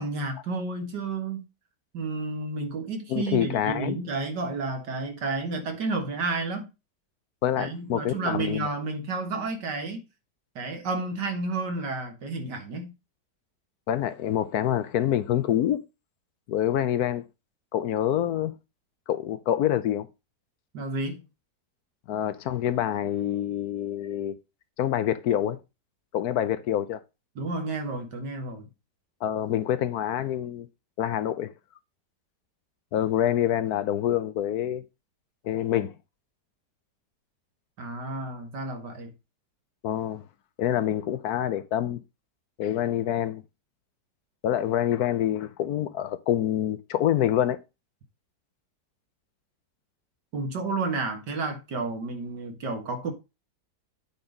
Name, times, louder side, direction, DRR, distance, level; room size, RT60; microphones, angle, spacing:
voice 1, 0.0-1.4 1.9-6.7 7.6-10.0 10.6-12.9 20.7-21.2 27.4-28.7 37.8-39.1 50.3-53.1, right 3 dB, 80° right, 2.3 m, -31 dB
voice 2, 3.1-4.0 7.4-8.7 13.9-15.8 16.5-17.2 17.7-18.5 19.1-20.1 22.1-24.4 24.8-25.6 26.1-27.0 29.2-30.7 31.0-31.5 32.9-34.8 35.4-35.9 39.8-40.2 40.6-42.0 42.6-43.4 44.4-47.6, left 11 dB, 70° left, 1.1 m, -26 dB
8.8 x 4.1 x 5.0 m
omnidirectional pair, 1.8 m